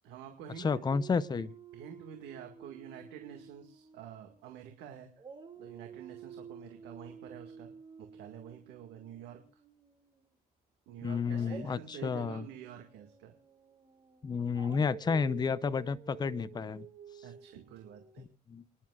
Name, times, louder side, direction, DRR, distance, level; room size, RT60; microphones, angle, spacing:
voice 1, 0.0-0.8 1.3-1.4 1.7-5.1 5.6-7.7 8.0-9.6 10.9-13.3 17.2-18.3, right 9 dB, 90° right, 4 dB, 2.0 m, -48 dB
voice 2, 0.6-1.5 11.0-12.4 14.2-16.9 18.2-18.6, left 5 dB, 25° left, 14 dB, 0.6 m, -31 dB
Dog, 0.6-4.8 5.2-10.2 11.3-18.3, right 6 dB, 30° right, 2.4 m, -51 dB
29.5 x 11.0 x 2.4 m, 0.34 s
cardioid pair, 110°, 17 cm